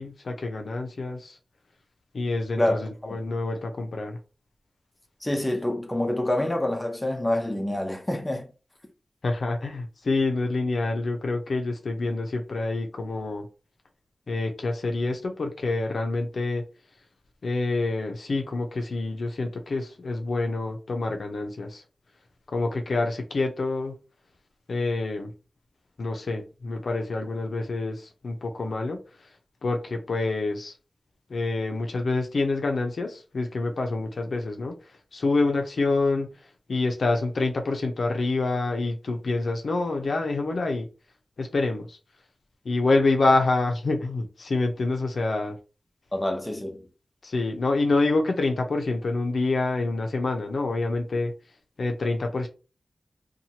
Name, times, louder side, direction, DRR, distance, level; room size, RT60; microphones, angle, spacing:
voice 1, 0.0-1.4 2.1-4.2 9.2-13.5 14.3-16.6 17.4-21.8 22.5-23.9 24.7-25.3 26.0-29.3 29.6-30.8 31.3-40.9 41.4-42.0 42.6-45.6 47.2-51.3 51.8-52.5, left 3 dB, 75° left, 0.5 m, -27 dB
voice 2, 2.6-3.1 5.2-8.5 46.1-46.9, left 1 dB, 15° left, 0.7 m, -27 dB
2.8 x 2.2 x 2.7 m
wide cardioid pair, 65°, 0 cm